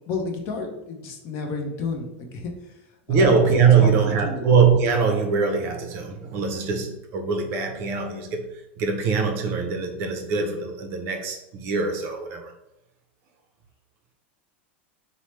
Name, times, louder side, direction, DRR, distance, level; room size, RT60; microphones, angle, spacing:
voice 1, 0.1-2.4 3.1-3.4 3.8-3.9 4.2-4.4, left 4 dB, 45° left, 0.5 m, -31 dB
voice 2, 3.1-8.5 8.8-12.5, right 5 dB, 45° right, 0.5 m, -22 dB
3.0 x 2.0 x 3.1 m
supercardioid pair, 135°, 6 cm